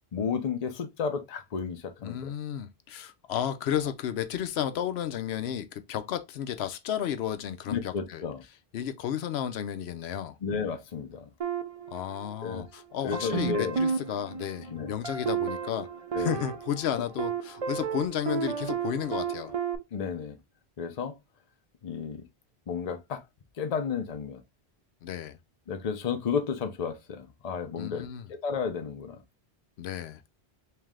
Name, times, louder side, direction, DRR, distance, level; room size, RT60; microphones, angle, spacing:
voice 1, 0.1-2.3 7.7-8.4 10.4-11.3 12.4-12.7 13.0-13.8 14.7-14.9 16.1-16.4 16.9-17.0 19.9-20.4 20.8-21.2 21.8-22.3 22.7-23.2 23.6-24.4 25.7-28.1 28.4-29.2, left 6 dB, 45° left, 0.7 m, -32 dB
voice 2, 2.0-8.2 8.7-10.4 11.9-15.9 16.2-19.5 25.0-25.4 27.8-28.3 29.8-30.3, left 10 dB, 85° left, 0.8 m, -33 dB
sound 1, 11.4-12.7 13.1-19.8, right 7 dB, 45° right, 0.5 m, -33 dB
3.3 x 3.2 x 3.5 m
omnidirectional pair, 1.0 m